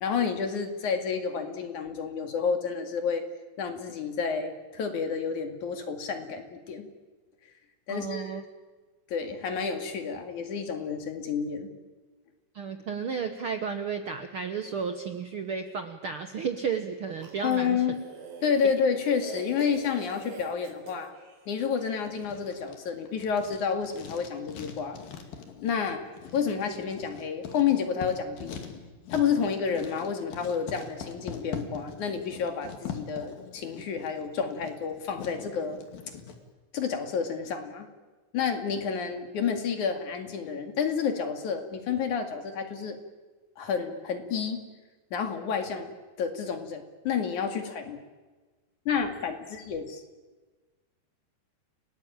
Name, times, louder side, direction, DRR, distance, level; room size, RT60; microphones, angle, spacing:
voice 1, 0.0-3.2 3.6-6.9 7.9-8.4 9.1-11.7 17.4-18.0 18.4-21.1 21.5-25.0 25.6-26.0 26.3-28.6 29.1-35.8 36.7-37.9 38.3-43.0 43.6-44.6 45.1-45.9 46.2-48.0 48.9-50.0, left 6 dB, 60° left, 6 dB, 3.6 m, -30 dB
voice 2, 7.9-8.4 12.5-17.8 18.6-18.7, right 6 dB, 60° right, 7 dB, 1.4 m, -33 dB
sound 1, 17.2-21.9, right 4 dB, 85° right, 5.8 m, -44 dB
Writing, 22.0-36.4, left 6 dB, 80° left, 4.1 m, -43 dB
30.0 x 19.0 x 8.9 m, 1.3 s
omnidirectional pair, 4.0 m